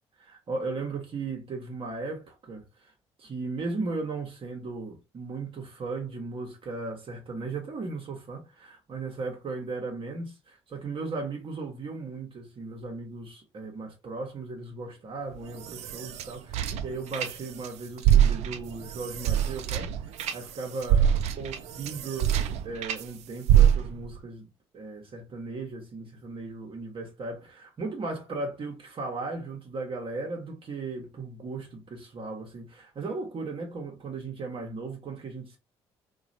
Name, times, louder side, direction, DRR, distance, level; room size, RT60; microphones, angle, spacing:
voice 1, 0.2-2.9 3.2-22.3 22.6-35.6, right 3 dB, 45° right, 0.9 m, -37 dB
sound 1, 15.3-17.7 18.0-23.0 23.5-24.2, right 10 dB, 60° right, 0.4 m, -25 dB
2.9 x 2.3 x 2.6 m
hypercardioid pair, 50°, 13 cm